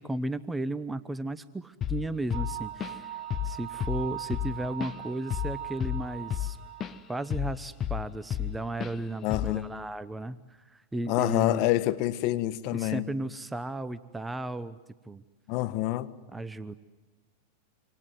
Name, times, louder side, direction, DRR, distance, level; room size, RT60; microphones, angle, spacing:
voice 1, 0.0-6.6 7.1-11.7 12.7-14.8 15.0-15.2 16.3-16.7, right 2 dB, 10° right, 1.0 m, -35 dB
Drum kit / Drum, 1.8-2.1 2.3-3.1 3.3-3.6 3.8-7.0 7.3-8.5 8.8-9.0 9.3-9.6, left 11 dB, 30° left, 1.0 m, -32 dB
sound 1, 2.3-7.3, right 12 dB, 60° right, 2.0 m, -40 dB
voice 2, 9.2-9.7 11.1-13.1 15.5-16.1, left 16 dB, 50° left, 1.5 m, -27 dB
27.0 x 26.5 x 7.8 m
hypercardioid pair, 100°, 0 cm